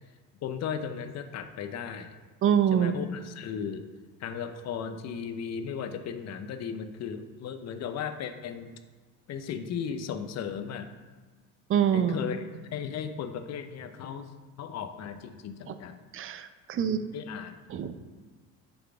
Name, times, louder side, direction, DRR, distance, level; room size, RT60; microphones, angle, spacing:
voice 1, 0.4-2.1 2.7-3.8 4.2-8.7 9.3-10.9 11.9-14.3 14.6-16.0 16.8-17.6, left 7 dB, 50° left, 9 dB, 0.6 m, -36 dB
voice 2, 2.4-2.9 11.7-12.2 15.7-15.8 16.1-17.0 17.7-18.0, right 9 dB, 40° right, 11 dB, 0.5 m, -25 dB
6.9 x 3.7 x 4.8 m, 1.3 s
supercardioid pair, 90°, 35 cm